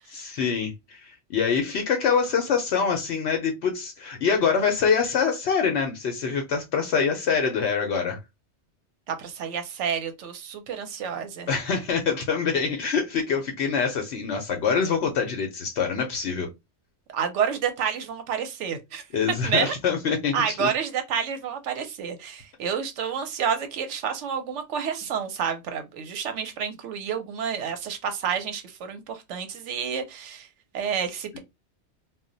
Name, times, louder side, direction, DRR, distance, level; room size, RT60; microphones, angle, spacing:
voice 1, 0.1-8.2 11.5-16.5 19.1-20.7, left 6 dB, 70° left, 0.8 m, -25 dB
voice 2, 9.1-11.5 17.1-19.0 19.4-19.8 20.3-30.5 30.7-31.4, right 7 dB, 80° right, 0.9 m, -29 dB
2.2 x 2.1 x 3.7 m
omnidirectional pair, 1.2 m